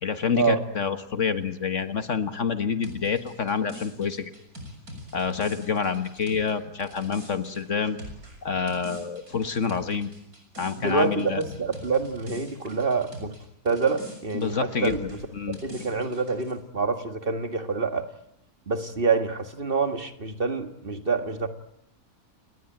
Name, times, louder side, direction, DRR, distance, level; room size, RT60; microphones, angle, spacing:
voice 1, 0.0-4.3 5.1-8.0 8.4-10.1 10.6-11.4 14.3-15.0 15.3-15.6, left 6 dB, 55° left, 10 dB, 1.8 m, -27 dB
sound 1, 2.8-13.4 13.7-16.5, equal, 70° right, 7.1 m, -44 dB
voice 2, 10.8-13.3 13.6-15.1 15.4-18.1 18.7-21.5, right 4 dB, 35° right, 8 dB, 1.9 m, -26 dB
30.0 x 20.0 x 9.1 m, 0.74 s
omnidirectional pair, 1.6 m